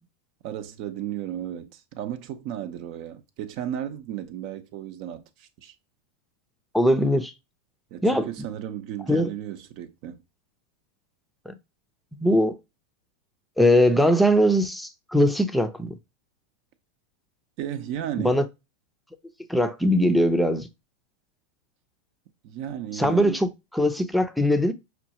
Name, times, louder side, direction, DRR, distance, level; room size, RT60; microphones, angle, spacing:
voice 1, 0.4-5.7 7.9-10.2 17.6-18.4 22.4-23.4, right 11 dB, 55° right, 0.7 m, -34 dB
voice 2, 6.7-7.3 8.0-8.3 9.1-9.3 11.5-11.6 12.2-12.6 13.6-15.9 18.2-18.5 19.5-20.7 22.9-24.7, equal, ahead, 0.6 m, -21 dB
6.0 x 2.3 x 2.9 m
supercardioid pair, 125°, 0 cm